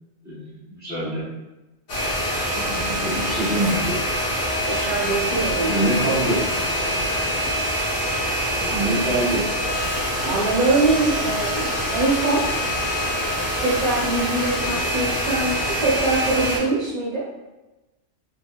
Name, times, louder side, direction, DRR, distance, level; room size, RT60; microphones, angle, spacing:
voice 1, 0.2-1.2 2.6-4.0 5.7-6.4 8.6-9.4, right 1 dB, 15° right, -7 dB, 1.0 m, -25 dB
sound 1, 1.9-16.6, equal, 85° left, 1.4 m, -25 dB
voice 2, 4.7-6.1 8.9-9.0 10.2-12.5 13.6-17.3, right 3 dB, 40° right, -7 dB, 0.7 m, -23 dB
3.6 x 3.4 x 2.3 m, 1.0 s
omnidirectional pair, 1.2 m